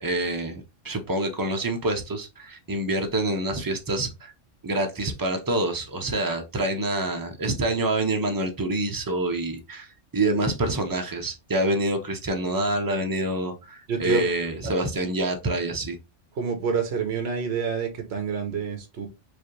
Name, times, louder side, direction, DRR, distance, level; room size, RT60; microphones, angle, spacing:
voice 1, 0.0-4.3 4.6-16.0, right 2 dB, 25° right, 0.5 m, -27 dB
voice 2, 13.9-14.3 14.6-14.8 16.4-19.1, right 5 dB, 60° right, 1.2 m, -27 dB
4.8 x 2.6 x 3.0 m
omnidirectional pair, 1.3 m